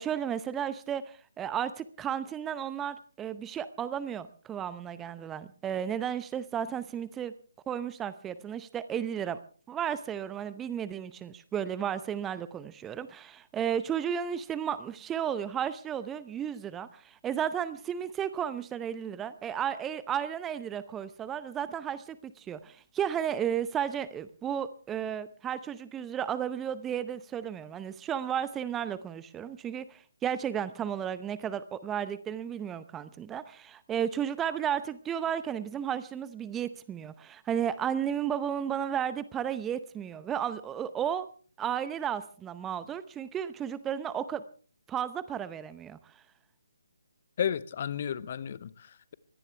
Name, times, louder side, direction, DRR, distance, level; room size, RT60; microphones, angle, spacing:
voice 1, 0.0-7.3 7.7-9.4 9.7-41.3 41.6-44.4 44.9-46.1, right 9 dB, 10° right, 0.7 m, -33 dB
voice 2, 47.4-49.1, left 8 dB, 40° left, 0.9 m, -33 dB
23.0 x 17.5 x 3.4 m
figure-of-eight pair, 145°, 0 cm